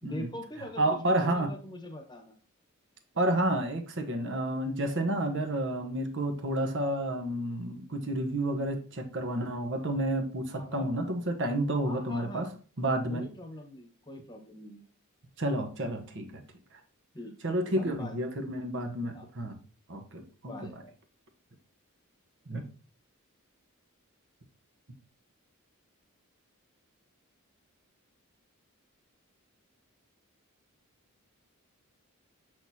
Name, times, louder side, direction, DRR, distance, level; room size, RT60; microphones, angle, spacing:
voice 1, 0.0-2.3 10.5-10.9 11.8-12.5 13.1-14.8 17.1-18.2 19.1-19.3 20.5-20.9, left 1 dB, 20° left, 4 dB, 1.1 m, -42 dB
voice 2, 0.8-1.5 3.1-12.5 12.8-13.2 15.4-16.4 16.7-16.8 17.4-19.6 19.9-20.5 22.5-22.7, right 1 dB, 60° right, 5 dB, 1.2 m, -30 dB
6.3 x 6.3 x 2.8 m, 0.38 s
head